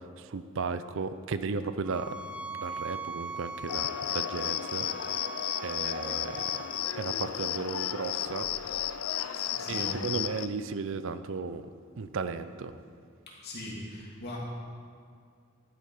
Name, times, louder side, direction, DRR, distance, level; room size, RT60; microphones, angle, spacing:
voice 1, 0.2-2.1 2.5-4.9 5.2-5.3 5.6-6.6 7.0-8.5 9.7-11.6 12.0-12.7, right 4 dB, 65° right, 12 dB, 0.5 m, -35 dB
sound 1, 1.8-6.9, right 2 dB, 5° right, 0.4 m, -40 dB
Cricket, 3.7-10.5, left 11 dB, 90° left, 0.4 m, -33 dB
voice 2, 9.3-10.0 13.3-14.4, left 1 dB, 50° left, -4 dB, 2.8 m, -41 dB
12.5 x 9.0 x 4.9 m, 2.2 s
head